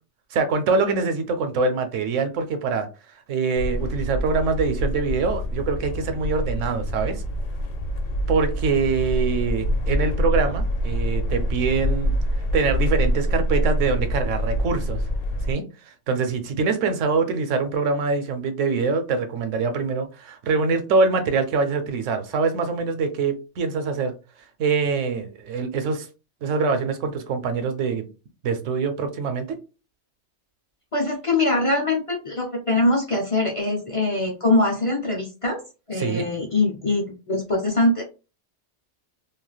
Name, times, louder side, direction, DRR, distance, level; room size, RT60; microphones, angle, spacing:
voice 1, 0.3-2.9 3.3-7.2 8.3-12.1 12.5-15.0 15.5-24.1 24.6-26.1 26.4-28.1 28.4-29.6 36.0-36.2, right 4 dB, 85° right, 1.0 m, -24 dB
sound 1, 3.6-15.5, equal, 85° left, 1.0 m, -25 dB
voice 2, 30.9-35.6 35.9-38.0, left 2 dB, 35° left, 0.5 m, -23 dB
3.2 x 2.5 x 2.2 m
omnidirectional pair, 1.3 m